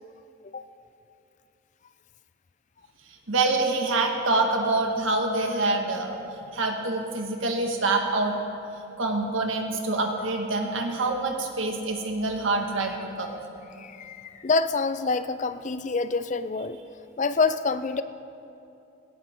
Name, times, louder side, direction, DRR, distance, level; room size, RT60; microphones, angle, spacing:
voice 1, 3.3-6.2 6.5-8.4 9.0-13.3, right 2 dB, 75° right, 2 dB, 1.8 m, -26 dB
voice 2, 13.8-16.8 17.2-18.0, left 4 dB, 35° left, 12 dB, 0.4 m, -26 dB
19.0 x 17.5 x 3.7 m, 2.7 s
head